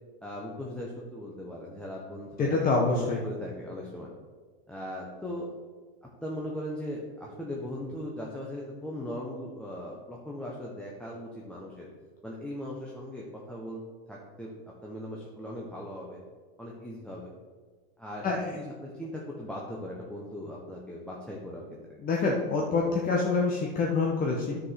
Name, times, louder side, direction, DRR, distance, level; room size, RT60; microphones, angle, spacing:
voice 1, 0.2-2.5 2.9-4.1 4.7-5.5 6.2-11.9 12.2-13.8 14.1-14.5 14.8-16.2 16.6-17.3 18.0-18.2 18.5-22.0, left 1 dB, 5° left, -3 dB, 1.3 m, -39 dB
voice 2, 2.4-3.2 18.2-18.4 22.0-24.6, left 3 dB, 30° left, -2 dB, 1.4 m, -26 dB
9.6 x 5.2 x 6.0 m, 1.4 s
hypercardioid pair, 115°, 31 cm